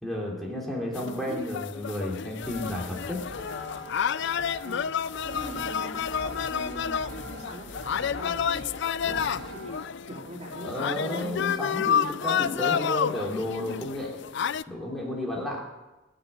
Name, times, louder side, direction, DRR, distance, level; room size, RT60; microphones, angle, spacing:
voice 1, 0.0-3.2 9.0-9.3 10.6-14.3 14.7-15.6, left 1 dB, ahead, -3 dB, 2.9 m, -32 dB
sound 1, 0.9-14.6, left 8 dB, 60° left, 0.4 m, -30 dB
voice 2, 1.0-1.6 4.6-4.9 5.2-9.7 10.0-11.3 11.7-11.8, right 1 dB, 35° right, -2 dB, 3.2 m, -42 dB
sound 2, 2.4-9.8, equal, 55° right, 3.1 m, -42 dB
20.0 x 6.8 x 9.5 m, 1.1 s
head